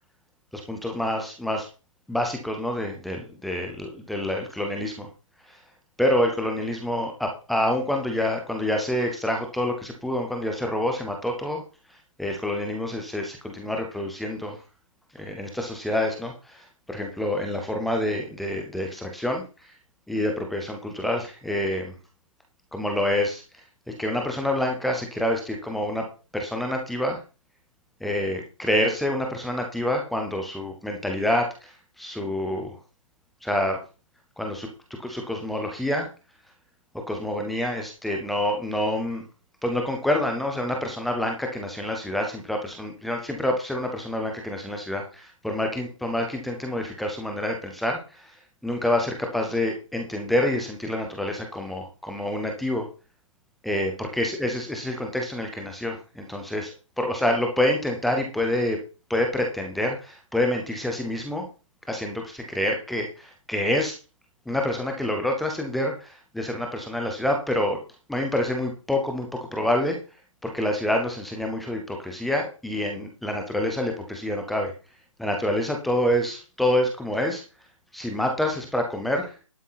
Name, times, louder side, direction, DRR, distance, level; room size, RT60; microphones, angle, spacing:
voice 1, 0.5-1.7 2.1-5.1 6.0-11.6 12.2-14.6 15.1-19.4 20.1-21.9 22.7-23.4 23.9-26.1 26.3-27.2 28.0-32.8 33.4-33.8 34.4-34.7 35.0-36.1 37.1-39.2 39.6-48.2 48.6-52.9 53.6-56.7 57.0-58.8 59.1-61.5 61.9-64.0 64.5-67.8 68.1-69.3 69.5-70.0 70.4-74.7 75.2-77.4 77.9-79.3, left 1 dB, ahead, 3 dB, 0.5 m, -27 dB
11.5 x 6.2 x 5.7 m, 0.32 s
hypercardioid pair, 175°, 17 cm